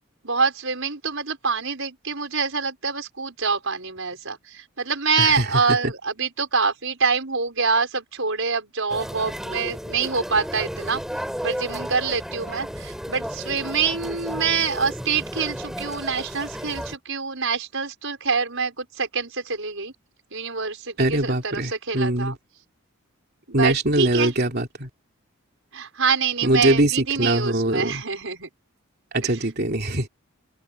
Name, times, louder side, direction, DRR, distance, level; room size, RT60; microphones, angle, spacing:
voice 1, 0.2-11.0 11.4-19.9 20.3-22.4 23.5-24.3 25.7-28.5 29.2-29.5, right 5 dB, 60° right, 6.0 m, -26 dB
voice 2, 5.2-5.8 21.0-22.4 23.5-24.9 26.4-28.0 29.1-30.1, right 1 dB, 45° right, 3.0 m, -22 dB
sound 1, 8.9-17.0, equal, ahead, 5.8 m, -33 dB
head